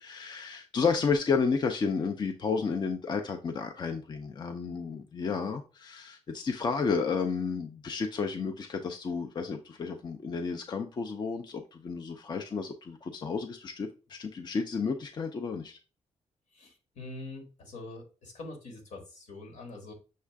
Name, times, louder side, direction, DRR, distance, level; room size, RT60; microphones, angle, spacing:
voice 1, 0.0-15.8, left 5 dB, 40° left, 0.5 m, -32 dB
voice 2, 16.5-19.9, left 2 dB, 80° left, 1.6 m, -44 dB
6.4 x 2.5 x 3.3 m
cardioid pair, 110°, 12 cm